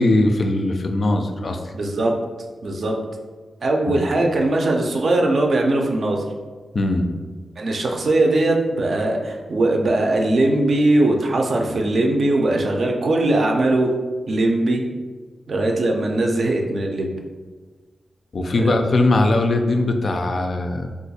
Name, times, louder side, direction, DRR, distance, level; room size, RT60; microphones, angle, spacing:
voice 1, 0.0-1.6 3.9-4.0 6.7-7.1 18.3-20.9, left 2 dB, 55° left, 5 dB, 0.3 m, -20 dB
voice 2, 1.7-2.1 2.6-3.0 3.6-6.2 7.6-13.9 14.3-14.9 15.5-17.2 18.6-18.8, right 2 dB, 65° right, 1 dB, 0.4 m, -20 dB
2.5 x 2.3 x 4.0 m, 1.4 s
wide cardioid pair, 105°, 0 cm